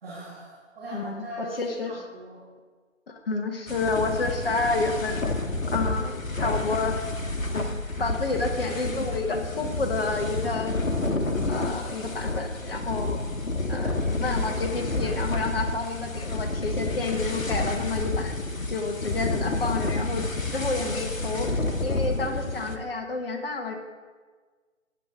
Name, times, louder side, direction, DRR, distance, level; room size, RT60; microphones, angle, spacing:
voice 1, 0.0-2.4, right 1 dB, 45° right, -5 dB, 2.7 m, -40 dB
voice 2, 0.9-2.0 3.1-5.4 5.7-7.0 7.5-10.8 11.5-13.2 13.7-18.3 18.7-21.5 21.8-23.8, left 3 dB, 45° left, 4 dB, 1.5 m, -30 dB
sound 1, 3.7-22.8, left 2 dB, 90° left, 1.2 m, -29 dB
15.0 x 9.1 x 3.7 m, 1.5 s
figure-of-eight pair, 145°, 38 cm